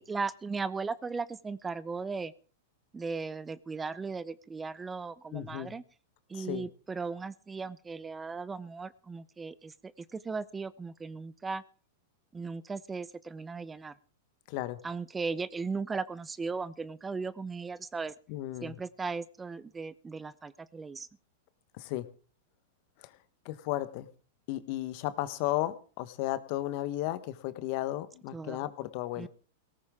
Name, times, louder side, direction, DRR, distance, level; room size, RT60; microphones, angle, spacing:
voice 1, 0.0-2.3 2.9-5.8 6.3-11.6 12.3-13.9 14.8-18.1 18.6-21.1 28.3-28.6 29.2-29.3, right 4 dB, 15° right, 18 dB, 0.6 m, -37 dB
voice 2, 5.3-5.7 6.3-6.7 14.5-14.8 18.3-18.7 21.7-22.1 23.0-23.1 23.4-24.1 24.5-29.3, left 15 dB, 55° left, 13 dB, 1.2 m, -34 dB
17.5 x 14.5 x 3.7 m, 0.41 s
hypercardioid pair, 110°, 0 cm